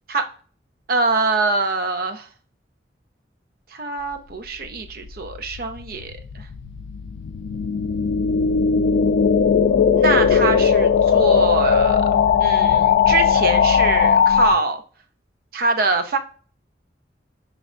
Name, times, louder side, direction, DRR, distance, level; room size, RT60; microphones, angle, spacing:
voice 1, 0.9-2.3 3.7-6.2 10.0-12.0 12.4-14.8 15.5-16.2, right 3 dB, 55° right, 7 dB, 0.5 m, -23 dB
sound 1, 5.2-14.5, left 6 dB, 85° left, 0.3 m, -18 dB
5.1 x 3.2 x 2.5 m, 0.42 s
head